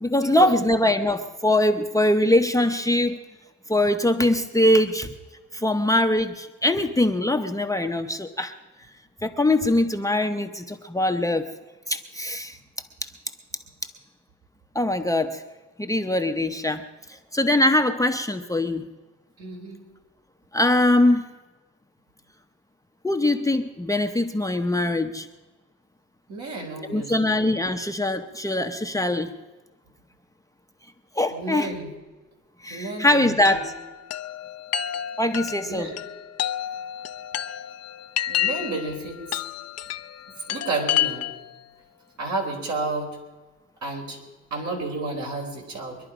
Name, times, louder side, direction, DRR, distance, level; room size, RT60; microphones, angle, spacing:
voice 1, 0.0-3.2 3.7-5.1 5.5-8.5 9.2-11.5 11.9-12.6 13.0-13.1 14.7-15.4 15.8-18.9 20.5-21.2 23.0-25.3 26.8-29.3 31.1-31.7 32.6-33.7 35.2-35.9, left 1 dB, 10° left, 5 dB, 0.8 m, -22 dB
voice 2, 19.4-19.8 26.3-27.4 31.3-31.9 32.7-33.6 35.6-36.1 38.3-39.2 40.5-41.3 42.2-43.2 43.8-44.2 44.5-46.0, right 3 dB, 65° right, 0 dB, 4.2 m, -31 dB
Chime, 33.5-41.6, left 11 dB, 55° left, 0.6 m, -30 dB
23.0 x 11.0 x 5.0 m, 1.2 s
cardioid pair, 90°, 30 cm